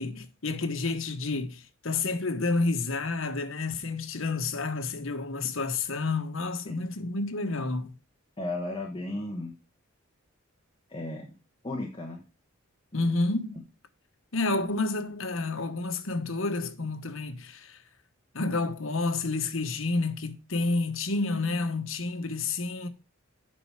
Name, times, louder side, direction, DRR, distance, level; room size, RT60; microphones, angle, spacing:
voice 1, 0.0-7.9 12.9-13.7 14.3-17.8 18.3-22.9, left 3 dB, 70° left, 1.2 m, -30 dB
voice 2, 8.4-9.5 10.9-11.3 11.6-12.2 12.9-13.1, left 2 dB, 25° left, 1.3 m, -34 dB
8.9 x 5.5 x 4.8 m
head